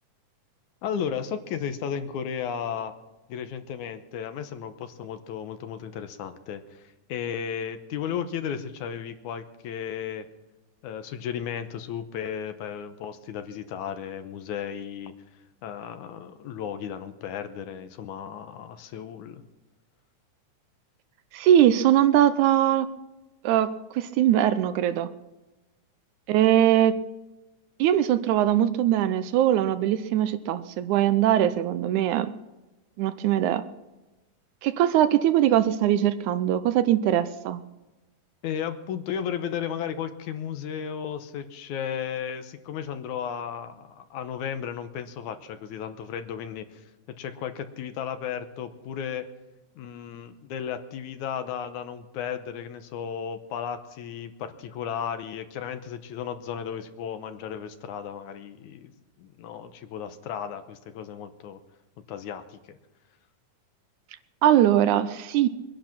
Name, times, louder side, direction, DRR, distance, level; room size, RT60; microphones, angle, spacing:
voice 1, 0.8-2.9 3.3-10.3 10.8-15.1 15.6-19.4 38.4-46.8 47.2-49.3 49.8-58.9 59.2-61.6 62.1-62.8, left 8 dB, 75° left, 9 dB, 2.3 m, -34 dB
voice 2, 21.3-22.9 23.4-25.1 26.3-27.0 27.8-32.3 33.0-33.6 34.6-37.6 64.4-65.5, right 11 dB, 75° right, 12 dB, 2.0 m, -21 dB
23.0 x 10.5 x 6.0 m, 1.1 s
omnidirectional pair, 3.7 m